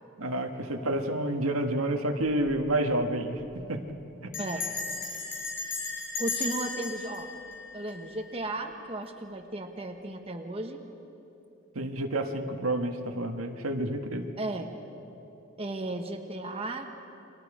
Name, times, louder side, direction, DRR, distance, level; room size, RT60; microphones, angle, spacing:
voice 1, 0.2-3.4 3.7-3.8 4.2-4.3 11.7-14.3, right 1 dB, 85° right, 4 dB, 1.7 m, -29 dB
Bell, 2.2-2.6 2.8-2.9 3.2-3.5 4.3-8.4, left 4 dB, 60° left, 5.2 m, -36 dB
voice 2, 6.2-7.3 7.7-10.8 14.4-14.7 15.6-16.9, right 2 dB, 30° right, 3 dB, 1.2 m, -35 dB
30.0 x 23.5 x 5.1 m, 2.9 s
head